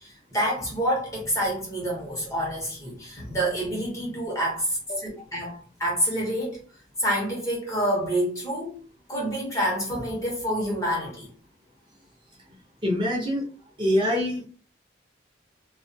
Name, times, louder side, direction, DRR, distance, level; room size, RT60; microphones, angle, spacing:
voice 1, 0.0-6.6 7.0-8.8 9.1-11.3, equal, 15° left, 0.8 m, -27 dB
voice 2, 12.8-13.4 13.8-14.4, left 1 dB, 25° right, 0.7 m, -24 dB
2.3 x 2.2 x 2.6 m
head